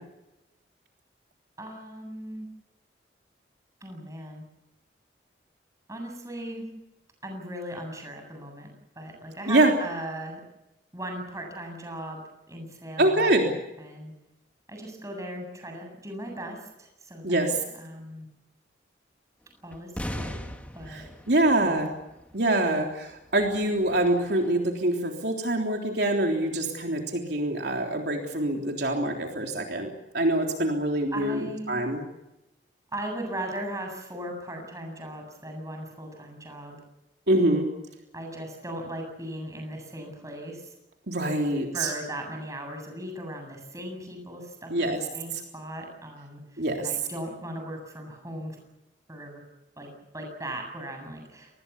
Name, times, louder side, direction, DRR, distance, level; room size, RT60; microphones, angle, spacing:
voice 1, 1.6-2.5 3.8-4.4 5.9-6.7 7.2-8.7 8.9-10.4 10.9-13.3 13.8-14.1 14.7-18.3 19.6-21.0 21.4-21.8 31.1-31.8 32.9-36.8 38.1-40.7 41.7-48.6 49.1-49.4 49.8-51.6, right 1 dB, 15° right, 3 dB, 7.9 m, -38 dB
voice 2, 13.0-13.5 17.2-17.6 20.9-21.9 22.3-32.0 37.3-37.7 41.1-41.9 44.7-45.0 46.6-46.9, right 1 dB, 65° right, 1 dB, 3.5 m, -25 dB
sound 1, 19.7-22.3 22.7-22.8 23.3-23.4 23.8-24.4, equal, 10° left, 1.9 m, -38 dB
28.5 x 21.0 x 7.1 m, 0.92 s
head